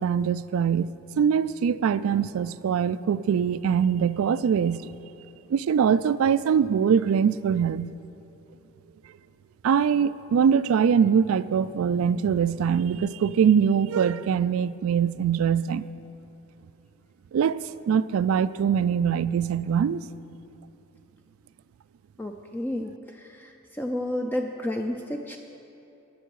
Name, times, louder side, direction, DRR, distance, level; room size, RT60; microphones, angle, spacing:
voice 1, 0.0-4.9 5.5-7.9 9.6-15.9 17.3-20.0, right 7 dB, 80° right, 16 dB, 0.3 m, -23 dB
voice 2, 22.2-25.4, left 1 dB, 10° left, 3 dB, 0.3 m, -31 dB
18.0 x 6.8 x 4.7 m, 2.9 s
head